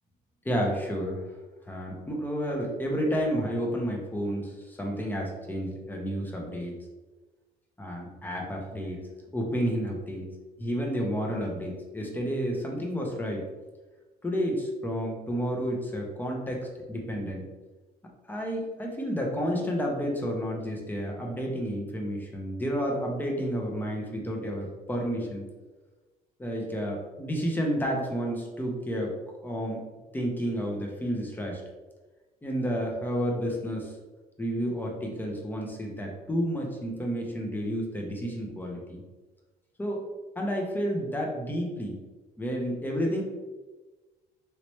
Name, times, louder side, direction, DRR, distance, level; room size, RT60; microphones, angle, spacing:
voice 1, 0.4-1.2 1.7-6.7 7.8-9.0 9.3-10.3 10.6-13.4 14.2-17.4 18.3-25.4 26.4-29.1 29.4-29.8 30.1-31.6 32.4-33.9 34.4-39.0 39.8-40.1 40.4-42.0 42.4-43.2, equal, 10° left, 0 dB, 0.7 m, -31 dB
3.0 x 2.9 x 3.0 m, 1.2 s
cardioid pair, 110°, 17 cm